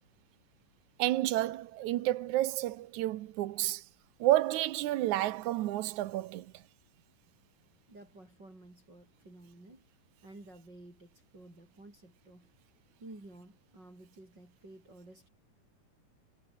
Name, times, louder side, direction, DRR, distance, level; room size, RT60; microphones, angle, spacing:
voice 1, 1.0-3.8 4.2-6.6, right 15 dB, 70° right, 2.0 m, -30 dB
voice 2, 7.9-9.8 10.2-12.5 13.0-15.3, right 2 dB, 30° right, 7.8 m, -53 dB
omnidirectional pair, 4.0 m